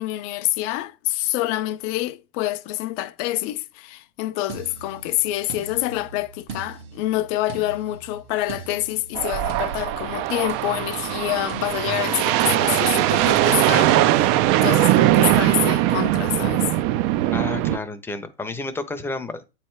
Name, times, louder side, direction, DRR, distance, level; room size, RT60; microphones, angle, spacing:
voice 1, 0.0-16.7, left 16 dB, 45° left, 0.6 m, -27 dB
sound 1, 4.5-10.8 11.5-11.8, right 5 dB, 65° right, 1.5 m, -41 dB
sound 2, 9.2-17.8, right 14 dB, 40° right, 0.5 m, -20 dB
voice 2, 17.3-19.5, left 3 dB, 5° left, 0.7 m, -31 dB
8.3 x 3.3 x 4.5 m
hypercardioid pair, 115°, 35 cm